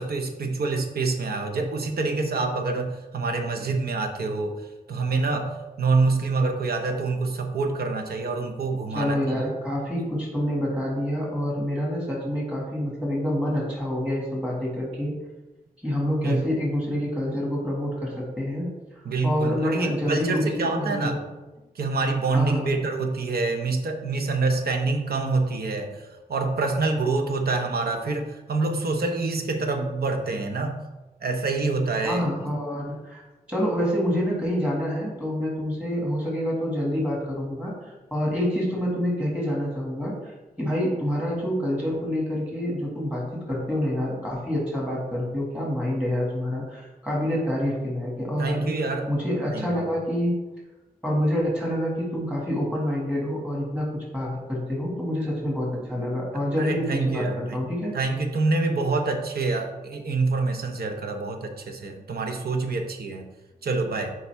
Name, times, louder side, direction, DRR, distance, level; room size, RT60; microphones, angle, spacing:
voice 1, 0.0-9.2 16.2-16.5 19.0-21.2 21.8-26.0 26.3-30.8 31.2-32.2 48.4-49.1 49.5-49.9 56.6-57.6 57.9-63.3 63.6-64.2, right 3 dB, 80° right, 4 dB, 0.8 m, -26 dB
voice 2, 8.9-15.1 15.8-18.7 19.2-21.3 22.3-22.7 32.0-33.2 33.5-50.4 51.0-57.9, equal, 5° right, -4 dB, 2.0 m, -27 dB
7.1 x 4.9 x 3.4 m, 1.1 s
wide cardioid pair, 150°, 16 cm